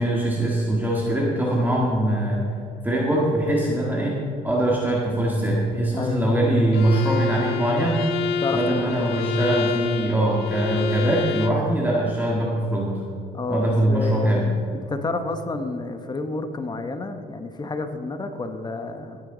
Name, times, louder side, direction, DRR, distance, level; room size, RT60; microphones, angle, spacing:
voice 1, 0.0-2.4 2.8-13.0 13.5-14.5, right 1 dB, 10° right, -3 dB, 1.8 m, -22 dB
voice 2, 5.9-6.8 8.4-8.8 13.3-19.2, left 2 dB, 25° left, 7 dB, 1.1 m, -30 dB
Bowed string instrument, 6.7-11.7, left 7 dB, 80° left, 0.7 m, -28 dB
17.5 x 9.4 x 3.9 m, 2.8 s
cardioid pair, 110°, 17 cm